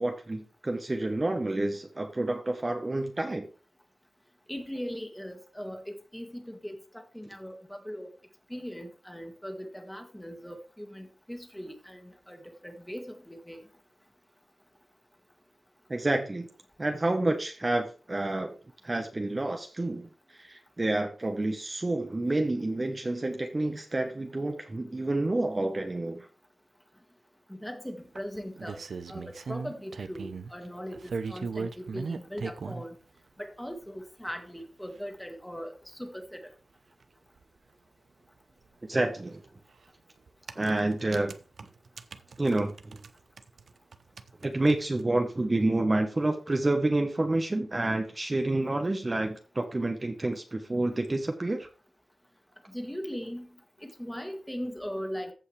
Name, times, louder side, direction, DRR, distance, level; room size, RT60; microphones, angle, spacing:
voice 1, 0.0-3.5 15.9-16.5 16.8-18.5 18.8-26.3 38.9-39.4 40.6-41.3 42.4-43.0 44.4-51.7, right 2 dB, 30° right, 4 dB, 1.1 m, -29 dB
voice 2, 4.5-8.1 8.5-13.6 27.5-28.8 29.1-33.0 33.4-36.4 52.7-53.5 53.8-55.3, equal, 5° left, 5 dB, 1.9 m, -39 dB
sound 1, 28.1-30.5 30.9-32.8 33.8-33.9 34.3-34.4 34.6-34.7 34.9-35.0 37.0-37.1 37.4-37.5 39.4-39.6 40.3-43.1 43.4-45.0, right 4 dB, 75° right, 0.7 m, -38 dB
15.0 x 5.5 x 3.3 m, 0.37 s
wide cardioid pair, 75°, 0 cm